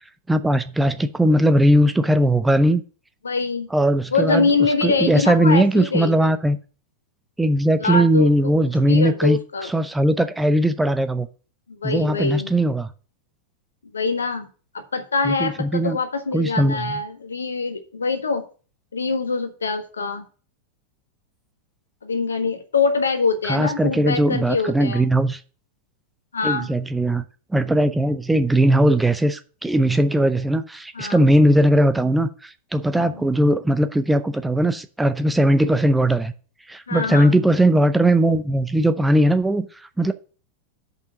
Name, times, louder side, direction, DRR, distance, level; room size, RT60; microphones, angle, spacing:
voice 1, 0.3-2.8 3.7-4.5 4.8-6.6 7.4-9.4 9.7-11.3 11.8-12.9 15.2-16.0 16.3-16.9 23.5-25.4 26.4-27.2 27.5-36.3 36.7-39.7 40.0-40.1, right 1 dB, 5° right, 0.6 m, -19 dB
voice 2, 3.2-3.7 4.1-6.3 7.8-8.5 8.8-9.7 11.7-12.5 13.9-14.5 14.7-18.5 18.9-20.2 22.0-25.0 26.3-26.7 30.9-31.2 32.9-33.2 36.9-37.4, left 4 dB, 70° left, 1.3 m, -24 dB
6.8 x 5.5 x 7.2 m
figure-of-eight pair, 90°, 0 cm